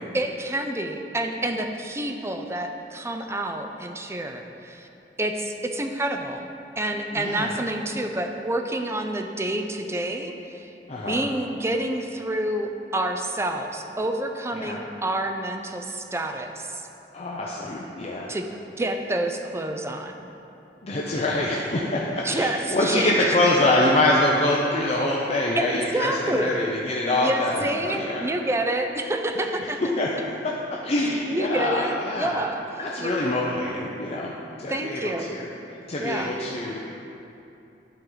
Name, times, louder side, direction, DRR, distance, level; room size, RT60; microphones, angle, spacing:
voice 1, 0.1-4.9 5.2-6.5 6.8-10.7 11.1-16.7 18.3-18.5 18.8-20.3 22.2-23.5 25.6-26.6 27.1-29.8 31.3-32.6 33.0-33.1 34.7-35.4 36.0-36.4, right 1 dB, 15° right, 5 dB, 0.4 m, -28 dB
voice 2, 7.1-7.6 10.9-11.2 14.5-14.8 17.1-18.3 20.8-28.3 29.4-29.5 30.0-30.1 30.4-32.4 32.8-34.3 34.6-35.5 35.9-36.8, left 1 dB, 35° left, -3 dB, 0.6 m, -25 dB
11.5 x 4.6 x 3.9 m, 2.8 s
head